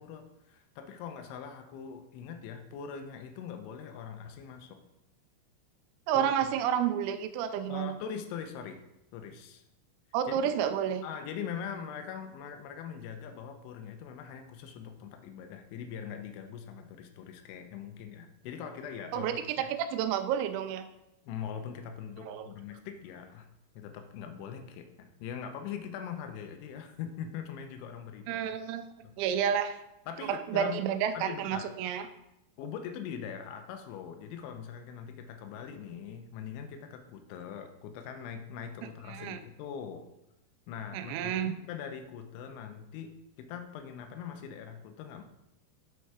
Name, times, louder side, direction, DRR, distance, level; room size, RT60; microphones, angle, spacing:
voice 1, 0.0-4.8 6.1-6.5 7.7-8.8 9.1-9.6 10.3-10.5 11.0-19.7 21.3-23.5 23.7-28.5 29.0-29.1 30.1-30.9 31.1-31.7 32.6-40.0 40.7-43.1 43.4-45.2, left 7 dB, 85° left, 6 dB, 2.8 m, -42 dB
voice 2, 6.1-8.0 10.1-11.0 19.1-20.9 22.3-22.5 28.3-28.9 29.2-29.8 30.3-32.1 39.1-39.4 40.9-41.5, right 9 dB, 85° right, 9 dB, 3.2 m, -30 dB
8.8 x 4.6 x 4.7 m, 0.87 s
omnidirectional pair, 6.0 m